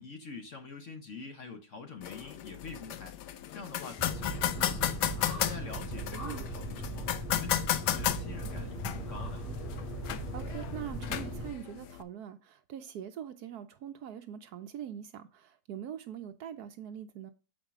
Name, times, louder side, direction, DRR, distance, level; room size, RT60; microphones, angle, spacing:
voice 1, 0.0-3.2 3.5-9.4, left 4 dB, 50° left, 1.1 m, -46 dB
sound 1, 2.0-12.0, left 11 dB, 75° left, 1.2 m, -35 dB
sound 2, 4.0-11.5, right 1 dB, 10° left, 2.1 m, -39 dB
voice 2, 6.1-6.4 10.3-17.3, right 9 dB, 70° right, 1.1 m, -43 dB
7.2 x 5.0 x 3.6 m
omnidirectional pair, 1.9 m